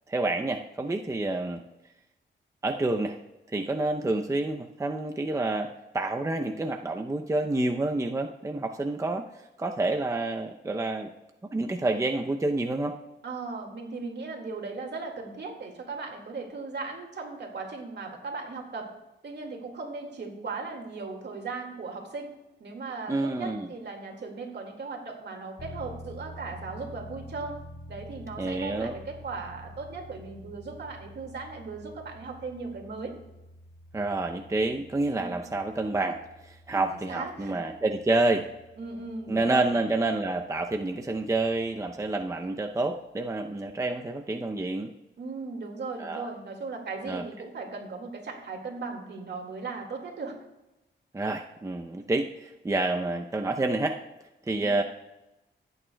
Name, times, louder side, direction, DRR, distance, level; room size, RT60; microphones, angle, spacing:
voice 1, 0.1-1.6 2.6-3.2 3.5-9.2 9.6-11.1 11.5-12.9 23.1-23.7 28.4-28.9 33.9-38.5 39.3-44.9 46.0-46.3 47.1-47.2 51.1-53.9 54.5-54.8, right 2 dB, 15° right, 4 dB, 0.6 m, -28 dB
voice 2, 13.2-18.9 19.2-22.3 22.6-27.6 27.9-33.1 35.2-35.4 36.9-37.6 38.8-39.7 45.2-50.4, right 4 dB, 60° right, 2 dB, 2.1 m, -37 dB
sound 1, 25.6-41.9, left 1 dB, 80° left, 2.1 m, -48 dB
15.5 x 8.8 x 2.3 m, 0.96 s
cardioid pair, 90°, 19 cm